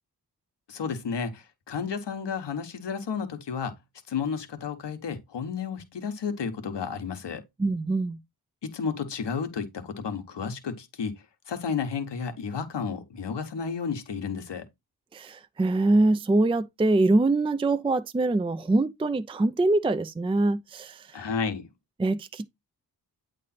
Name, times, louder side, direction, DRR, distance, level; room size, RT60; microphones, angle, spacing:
voice 1, 0.7-3.7 4.1-7.4 8.6-14.7 21.1-21.7, left 6 dB, 85° left, 1.2 m, -32 dB
voice 2, 7.6-8.2 15.1-21.1 22.0-22.5, right 2 dB, 15° right, 0.4 m, -24 dB
8.5 x 3.3 x 4.2 m
cardioid pair, 70°, 41 cm